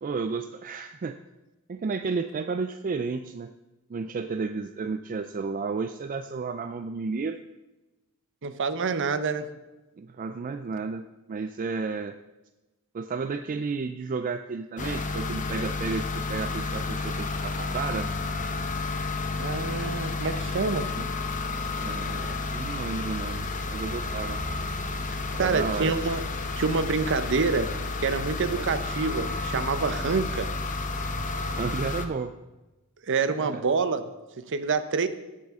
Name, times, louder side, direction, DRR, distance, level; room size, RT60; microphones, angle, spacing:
voice 1, 0.0-1.2 1.7-3.5 3.9-7.4 10.0-12.2 12.9-18.1 21.0-21.1 21.8-24.4 25.3-26.0 31.5-32.3 33.4-33.6, right 4 dB, 40° right, 8 dB, 0.4 m, -32 dB
voice 2, 8.4-9.5 19.4-20.9 22.2-22.3 25.4-26.2 26.6-27.7 28.0-30.5 33.1-34.0 34.4-35.1, right 4 dB, 60° right, 11 dB, 0.7 m, -27 dB
sound 1, 14.8-32.0, left 3 dB, 35° left, 0.8 m, -31 dB
17.0 x 7.5 x 3.6 m, 1.1 s
head